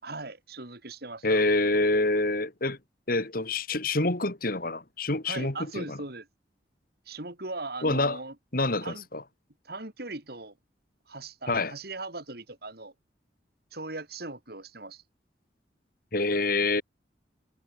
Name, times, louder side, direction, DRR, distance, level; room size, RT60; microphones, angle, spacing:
voice 1, 0.0-1.4 5.3-6.3 7.1-8.4 8.8-9.1 9.6-10.5 11.1-12.9 13.7-15.0, right 2 dB, 60° right, 4.0 m, -39 dB
voice 2, 1.2-2.8 3.1-6.0 7.8-8.2 8.5-9.2 11.5-11.7 16.1-16.8, left 2 dB, 55° left, 3.1 m, -26 dB
head